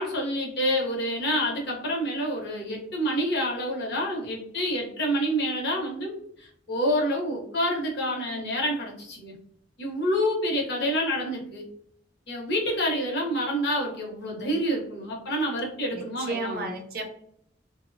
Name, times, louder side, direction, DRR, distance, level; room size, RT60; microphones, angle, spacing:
voice 1, 0.0-9.4 9.8-11.7 12.3-16.8, equal, 65° left, -1 dB, 0.8 m, -28 dB
voice 2, 15.9-17.0, right 3 dB, 55° right, 3 dB, 0.5 m, -33 dB
2.9 x 2.0 x 2.5 m, 0.67 s
head